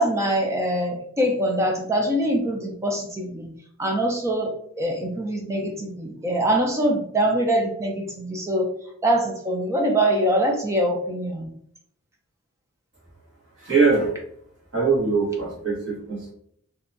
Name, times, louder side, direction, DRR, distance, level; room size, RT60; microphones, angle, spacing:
voice 1, 0.0-3.5 3.8-8.7 9.0-11.5, right 1 dB, 15° right, 1 dB, 0.3 m, -23 dB
voice 2, 13.6-14.2 14.7-16.3, right 4 dB, 55° right, -6 dB, 1.1 m, -22 dB
2.7 x 2.1 x 2.6 m, 0.68 s
head